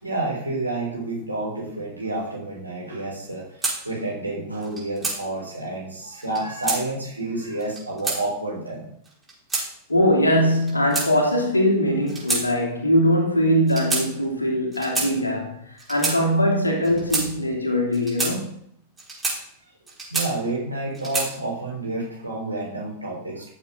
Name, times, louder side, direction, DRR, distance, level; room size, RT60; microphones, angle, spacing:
voice 1, 0.0-3.5 3.8-8.9 20.1-23.5, right 2 dB, 85° right, 4.1 m, -29 dB
sound 1, 3.6-3.8 4.6-5.2 6.2-6.8 7.6-8.2 9.1-9.7 10.5-11.4 12.1-12.4 12.7-12.9 13.7-14.0 14.7-15.1 15.8-16.2 16.8-17.3 17.9-18.3 19.0-19.4 19.9-20.5 20.9-21.3, right 3 dB, 15° right, 5.0 m, -27 dB
voice 2, 9.9-15.6 15.9-18.5, equal, 80° left, 2.7 m, -21 dB
14.5 x 7.4 x 3.8 m
figure-of-eight pair, 90°, 0 cm